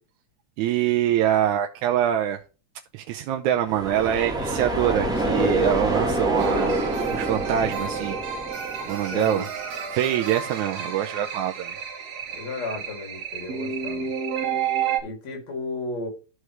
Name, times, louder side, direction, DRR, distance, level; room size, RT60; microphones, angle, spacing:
voice 1, 0.6-2.4 2.9-8.2 8.9-9.5 9.9-11.8, right 11 dB, 90° right, 2.1 m, -24 dB
sound 1, 3.6-9.4, right 1 dB, ahead, 2.1 m, -26 dB
sound 2, 6.4-15.0, right 7 dB, 60° right, 2.4 m, -31 dB
voice 2, 9.1-9.5 12.3-14.1 15.0-16.1, left 2 dB, 65° left, 3.8 m, -33 dB
13.5 x 4.8 x 3.2 m
omnidirectional pair, 3.4 m